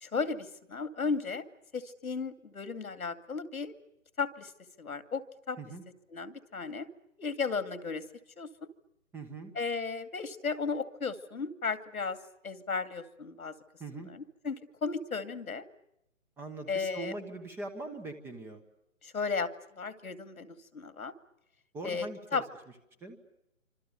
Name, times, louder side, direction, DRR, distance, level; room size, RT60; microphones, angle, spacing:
voice 1, 0.0-1.4 1.7-3.7 4.2-4.5 4.8-5.6 6.1-6.9 7.2-8.1 8.4-8.5 9.5-12.2 12.4-13.5 13.9-15.6 16.7-17.1 19.0-21.1 21.8-22.4, left 4 dB, 85° left, 10 dB, 2.5 m, -35 dB
voice 2, 9.1-9.5 13.8-14.1 16.4-18.6 21.7-22.4 23.0-23.2, right 2 dB, 5° right, 9 dB, 1.1 m, -41 dB
27.5 x 26.0 x 6.8 m, 0.84 s
hypercardioid pair, 155°, 42 cm